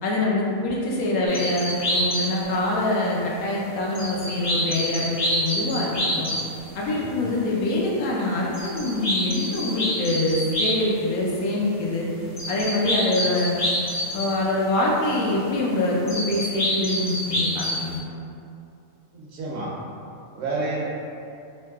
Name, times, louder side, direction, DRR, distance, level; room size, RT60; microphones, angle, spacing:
voice 1, 0.0-6.3 6.7-12.1 12.5-13.6 14.1-18.0, left 2 dB, 80° left, -4 dB, 1.1 m, -24 dB
sound 1, 1.2-2.7 3.9-10.9 11.5-11.6 12.4-14.4 16.1-17.9, equal, 35° left, 0.6 m, -27 dB
voice 2, 19.1-19.7 20.3-20.8, right 3 dB, 65° right, -5 dB, 1.0 m, -30 dB
3.1 x 2.7 x 3.4 m, 2.6 s
omnidirectional pair, 1.5 m